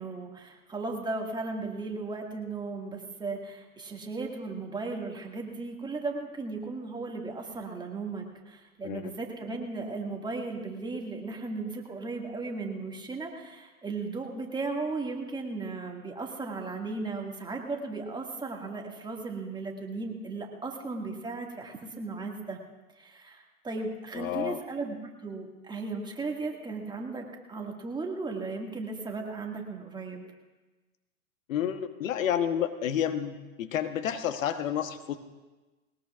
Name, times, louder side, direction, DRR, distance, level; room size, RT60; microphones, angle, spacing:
voice 1, 0.0-22.6 23.0-25.0 25.2-30.2, right 3 dB, 10° right, 1 dB, 1.9 m, -36 dB
voice 2, 24.1-24.6 31.5-35.2, left 9 dB, 60° left, 9 dB, 1.2 m, -30 dB
21.0 x 19.0 x 2.4 m, 1.2 s
hypercardioid pair, 110°, 44 cm